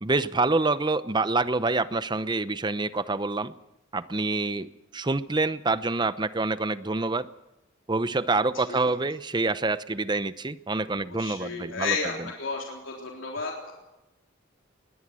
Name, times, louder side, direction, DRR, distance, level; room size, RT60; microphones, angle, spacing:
voice 1, 0.0-3.5 3.9-7.3 7.9-12.0, right 3 dB, 25° right, 14 dB, 0.7 m, -26 dB
voice 2, 11.0-12.1 12.4-13.7, left 4 dB, 85° left, -1 dB, 3.7 m, -32 dB
21.0 x 18.0 x 7.7 m, 0.93 s
head